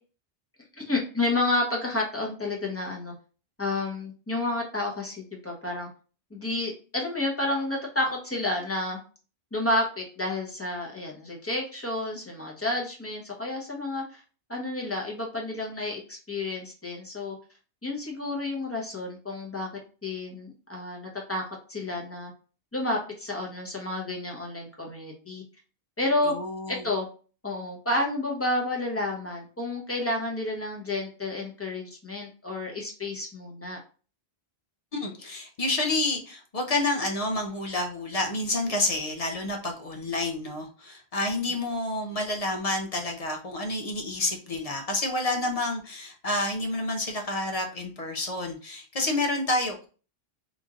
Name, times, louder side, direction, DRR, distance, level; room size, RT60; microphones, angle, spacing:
voice 1, 0.8-3.1 3.6-5.9 6.3-9.0 9.5-14.2 14.5-17.4 17.8-19.7 20.0-22.3 22.7-25.4 26.0-26.3 26.7-27.1 27.4-33.8, left 2 dB, 15° left, -1 dB, 0.9 m, -30 dB
voice 2, 26.2-26.9 34.9-49.9, left 2 dB, 40° left, 3 dB, 0.7 m, -29 dB
3.0 x 2.6 x 3.6 m, 0.36 s
omnidirectional pair, 1.0 m